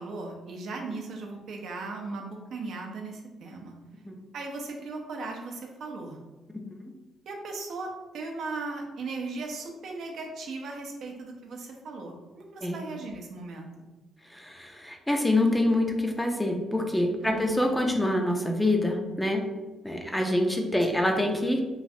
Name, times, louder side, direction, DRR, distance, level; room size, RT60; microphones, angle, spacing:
voice 1, 0.0-3.7 4.3-6.2 7.3-13.7 17.2-17.6 20.9-21.2, right 3 dB, 70° right, 1 dB, 0.5 m, -37 dB
voice 2, 14.3-19.4 19.8-21.6, left 1 dB, 5° left, 2 dB, 0.4 m, -26 dB
3.1 x 2.4 x 2.7 m, 1.2 s
cardioid pair, 90°, 0 cm